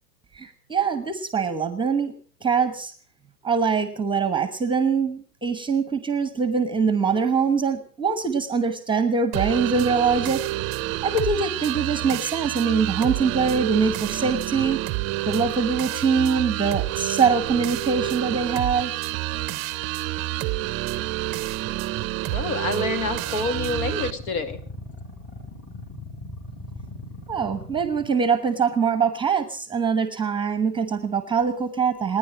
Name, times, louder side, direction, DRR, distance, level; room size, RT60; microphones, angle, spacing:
voice 1, 0.3-2.1 2.4-2.9 3.4-10.4 11.0-14.8 15.3-18.9 27.3-32.2, right 5 dB, 10° right, 12 dB, 1.1 m, -23 dB
sound 1, 9.3-24.1, right 18 dB, 30° right, 0.7 m, -28 dB
voice 2, 22.3-24.6, left 3 dB, 60° left, 10 dB, 2.6 m, -27 dB
sound 2, 22.8-28.1, left 1 dB, 25° left, 4.6 m, -39 dB
28.5 x 10.0 x 4.9 m, 0.43 s
hypercardioid pair, 120°, 49 cm